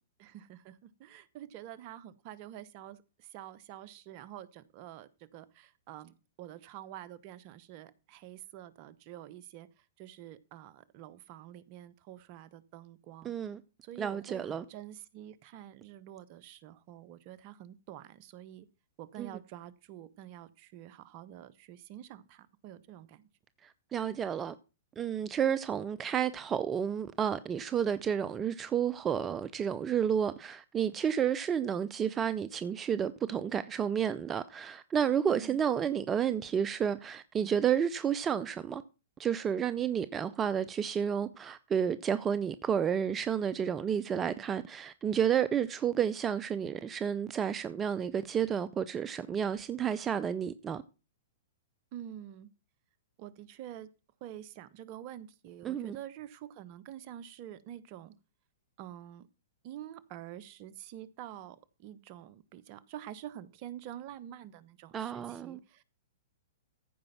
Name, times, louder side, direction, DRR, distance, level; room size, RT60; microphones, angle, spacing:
voice 1, 0.2-13.3 13.8-18.7 19.0-23.3 35.3-35.6 51.9-52.5 53.2-53.9 54.2-58.1 58.8-59.3 59.6-65.8, right 12 dB, 45° right, 0.9 m, -47 dB
voice 2, 13.2-13.6 14.0-14.6 19.2-19.3 23.6-24.6 25.0-38.8 39.2-50.8 55.6-56.0 64.9-65.6, right 8 dB, 20° right, 0.5 m, -31 dB
14.5 x 5.2 x 5.8 m
hypercardioid pair, 120°, 0 cm